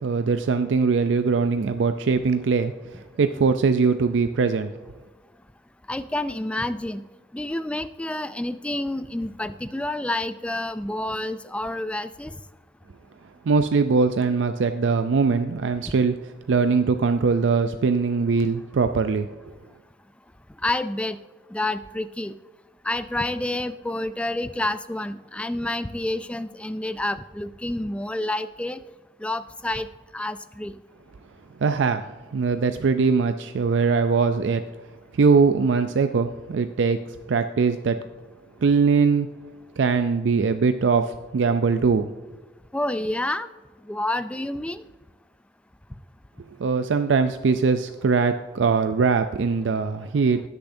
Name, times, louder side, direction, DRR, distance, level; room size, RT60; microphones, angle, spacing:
voice 1, 0.0-4.7 13.5-16.2 16.5-19.3 31.6-32.0 32.3-34.6 35.2-37.0 37.3-38.0 38.6-39.3 39.8-42.1 46.6-50.4, right 5 dB, 90° right, 9 dB, 0.4 m, -21 dB
voice 2, 5.9-7.0 7.3-12.3 20.6-21.2 21.5-22.3 22.8-28.8 29.2-29.9 30.1-30.7 42.7-43.5 43.9-44.8, left 1 dB, 5° left, 13 dB, 0.3 m, -28 dB
19.5 x 6.9 x 2.6 m, 1.3 s
head